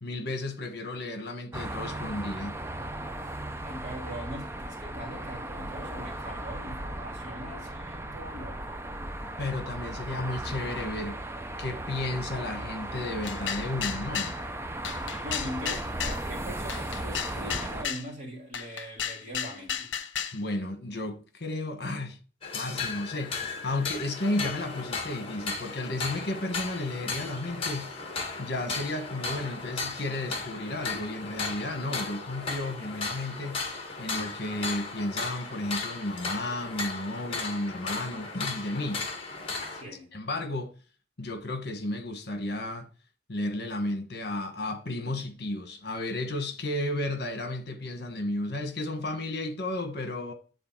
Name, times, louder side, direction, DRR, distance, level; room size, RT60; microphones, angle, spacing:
voice 1, 0.0-2.6 9.2-11.2 11.6-14.3 20.3-22.2 22.5-33.6 34.0-39.0 40.1-40.7 41.2-42.9 43.3-50.3, left 2 dB, 55° left, 1.5 m, -33 dB
sound 1, 1.5-17.8, right 1 dB, 15° right, 0.5 m, -36 dB
voice 2, 3.6-8.8 15.2-19.9 39.7-40.1, equal, 40° right, 2.8 m, -41 dB
sound 2, 13.2-14.4 14.8-16.2 16.7-18.1 18.5-20.4, left 8 dB, 75° left, 0.8 m, -33 dB
sound 3, 22.4-39.8, left 4 dB, 30° left, 1.7 m, -35 dB
10.0 x 4.0 x 4.6 m
head